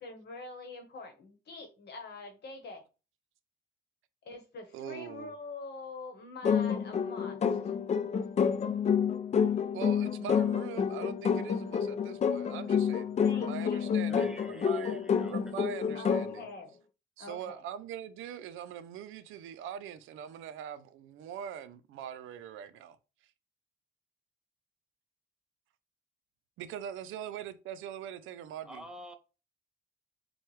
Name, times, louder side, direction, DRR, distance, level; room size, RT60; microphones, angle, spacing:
voice 1, 0.0-2.8 4.2-7.8 13.2-14.0 15.9-16.7 17.2-17.6, left 3 dB, 55° left, 1.1 m, -45 dB
voice 2, 4.7-5.3 9.7-15.0 15.3-16.5 17.2-23.0 26.6-28.9, right 9 dB, 85° right, 0.5 m, -42 dB
sound 1, 6.4-16.4, left 7 dB, 35° left, 0.4 m, -29 dB
voice 3, 14.1-15.3 28.6-29.2, right 1 dB, 5° right, 0.7 m, -47 dB
4.5 x 2.3 x 3.1 m
cardioid pair, 90°, 20 cm